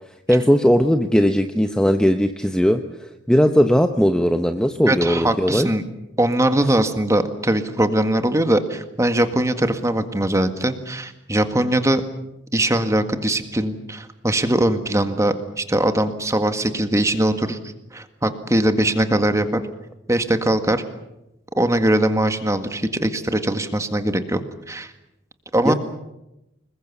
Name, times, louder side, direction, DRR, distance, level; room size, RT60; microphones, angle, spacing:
voice 1, 0.3-2.8 3.3-5.7 25.6-25.7, equal, 5° left, 6 dB, 0.9 m, -18 dB
voice 2, 4.9-5.8 6.2-12.0 12.5-17.6 17.9-19.6 20.1-20.8 21.6-24.4 24.7-24.9 25.5-25.7, right 1 dB, 15° right, 8 dB, 1.8 m, -21 dB
26.0 x 21.5 x 7.2 m, 0.90 s
head